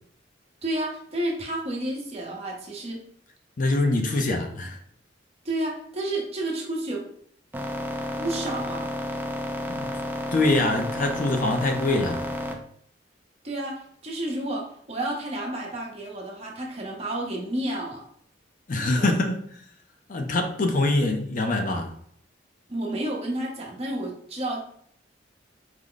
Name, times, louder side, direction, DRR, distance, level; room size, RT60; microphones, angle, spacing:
voice 1, 0.6-3.0 5.4-7.0 8.2-8.9 13.4-18.0 18.9-19.1 22.7-24.6, right 1 dB, 35° right, -1 dB, 0.9 m, -31 dB
voice 2, 3.6-4.8 9.7-9.9 10.3-12.3 18.7-19.4 20.1-21.9, left 2 dB, 45° left, 4 dB, 0.5 m, -24 dB
sound 1, 7.5-12.5, left 1 dB, 10° right, 0.4 m, -31 dB
4.8 x 2.1 x 3.8 m, 0.64 s
head